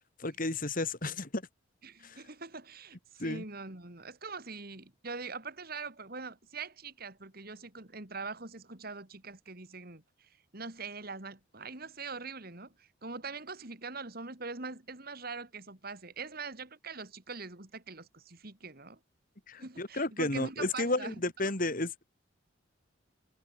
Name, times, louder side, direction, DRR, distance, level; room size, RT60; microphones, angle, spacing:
voice 1, 0.2-1.4 2.0-2.2 3.2-3.4 19.5-22.0, left 2 dB, 45° left, 2.8 m, -32 dB
voice 2, 1.8-19.0 19.6-21.2, right 4 dB, 50° right, 2.7 m, -43 dB
head